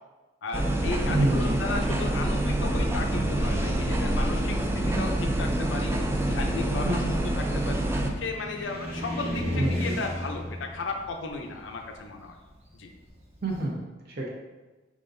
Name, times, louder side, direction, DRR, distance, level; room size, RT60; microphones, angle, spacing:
voice 1, 0.4-5.9 6.3-7.9 8.2-12.4 12.7-12.9, left 3 dB, 90° left, 4 dB, 0.5 m, -35 dB
sound 1, 0.5-8.1, right 1 dB, 15° right, 0.3 m, -26 dB
voice 2, 1.1-1.5 6.8-7.1 9.5-10.0 13.4-13.7 14.1-14.3, right 1 dB, 60° right, -2 dB, 0.7 m, -27 dB
Car, 5.4-13.6, equal, 35° right, 1.2 m, -36 dB
4.9 x 3.6 x 2.6 m, 1.2 s
head